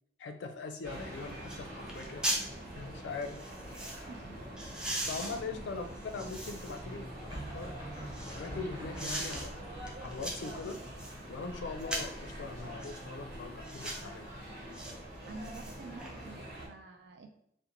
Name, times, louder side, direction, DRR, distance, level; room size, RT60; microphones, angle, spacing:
voice 1, 0.2-2.3 2.8-3.4 5.1-7.8 8.3-10.8 11.3-14.3, left 4 dB, 80° left, 7 dB, 0.4 m, -41 dB
sound 1, 0.8-16.7, right 1 dB, 55° right, 0.9 m, -45 dB
sound 2, 1.5-1.6 1.9-2.5 3.2-4.0 4.6-6.8 7.3-8.5 8.9-9.5 9.9-11.2 11.8-12.2 12.8-13.0 13.6-14.1 14.7-14.9 15.3-16.1 16.5-16.6, right 1 dB, 5° right, 0.4 m, -39 dB
voice 2, 4.1-4.4 5.1-5.7 15.3-17.3, right 3 dB, 70° right, 5 dB, 0.4 m, -49 dB
sound 3, 4.8-5.2 7.3-10.0, right 1 dB, 25° right, 0.9 m, -45 dB
2.5 x 2.1 x 2.8 m, 0.73 s
head